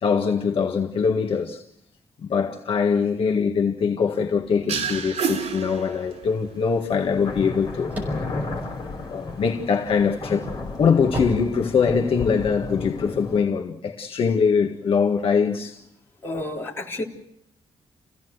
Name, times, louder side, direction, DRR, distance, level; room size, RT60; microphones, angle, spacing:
voice 1, 0.0-1.6 2.2-8.0 9.1-10.5 10.8-15.8, left 6 dB, 55° left, 1.7 m, -22 dB
sound 1, 4.7-6.5, right 6 dB, 85° right, 3.6 m, -28 dB
sound 2, 6.1-6.2 7.0-13.4, left 3 dB, 35° left, 5.8 m, -33 dB
sound 3, 7.9-9.6 10.1-12.3, equal, 15° right, 5.9 m, -33 dB
voice 2, 16.2-17.0, left 2 dB, 20° left, 3.8 m, -30 dB
28.5 x 16.5 x 8.0 m
wide cardioid pair, 175°, 11 cm